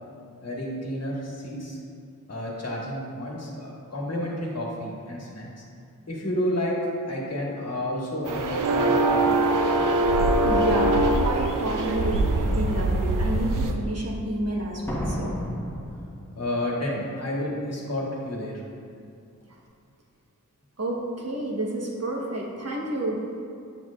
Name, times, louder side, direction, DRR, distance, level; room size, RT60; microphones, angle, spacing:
voice 1, 0.4-1.8 2.3-5.5 6.1-6.7 7.1-9.4 16.3-18.6, left 1 dB, 50° left, -3 dB, 1.3 m, -30 dB
sound 1, 8.3-13.7, right 2 dB, 75° right, 0.6 m, -22 dB
voice 2, 10.4-15.4 20.8-23.2, right 1 dB, 50° right, -2 dB, 1.1 m, -30 dB
Slam, 11.7-11.8 12.4-12.8 14.9-16.8 17.0-17.1, equal, 10° left, 1.0 m, -32 dB
7.6 x 7.1 x 2.4 m, 2.5 s
wide cardioid pair, 95°, 32 cm